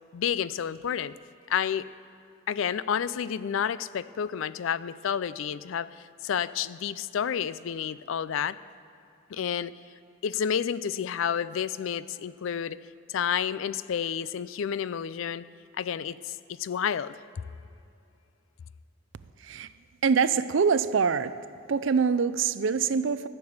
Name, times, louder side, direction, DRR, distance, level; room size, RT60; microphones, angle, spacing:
voice 1, 0.1-1.1 1.5-1.9 2.5-5.9 6.2-8.6 9.3-9.7 10.2-12.8 13.1-15.5 15.8-17.2, left 8 dB, 75° left, 17 dB, 0.4 m, -30 dB
voice 2, 20.0-21.3 21.7-23.3, right 6 dB, 65° right, 14 dB, 0.5 m, -24 dB
14.0 x 6.8 x 8.7 m, 2.7 s
head